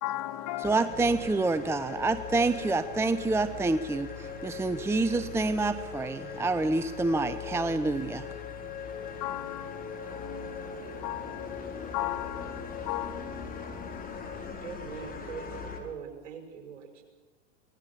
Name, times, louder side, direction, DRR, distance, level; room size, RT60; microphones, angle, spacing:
voice 1, 0.0-0.9 9.0-14.5, left 14 dB, 45° left, 11 dB, 2.0 m, -37 dB
sound 1, 0.6-15.8, left 5 dB, 25° left, 4.1 m, -40 dB
voice 2, 0.6-8.3, right 3 dB, 5° right, 12 dB, 0.7 m, -27 dB
voice 3, 14.3-17.0, right 7 dB, 70° right, 5 dB, 5.6 m, -42 dB
24.5 x 18.5 x 7.4 m, 1.2 s
hypercardioid pair, 100°, 38 cm